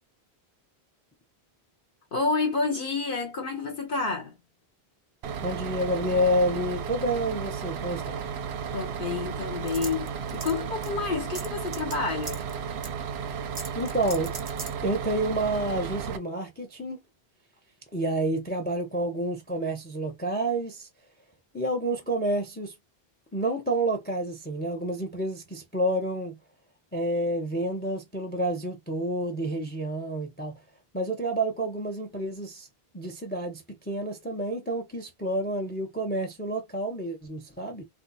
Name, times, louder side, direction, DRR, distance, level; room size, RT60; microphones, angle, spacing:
voice 1, 2.1-4.4 8.7-12.4, left 4 dB, 60° left, 0.8 m, -29 dB
Bus, 5.2-16.2, right 7 dB, 90° right, 0.8 m, -34 dB
voice 2, 5.4-8.3 13.3-13.4 13.8-14.3 14.8-17.0 17.9-20.9 21.5-22.7 23.3-26.4 26.9-30.6 30.9-32.7 32.9-37.8, right 1 dB, 15° left, 0.5 m, -29 dB
sound 1, 9.7-10.6 10.8-10.9 11.3-11.9 12.2-12.5 12.8-12.9 13.5-14.7, right 4 dB, 35° right, 0.6 m, -38 dB
2.6 x 2.2 x 3.9 m
omnidirectional pair, 1.1 m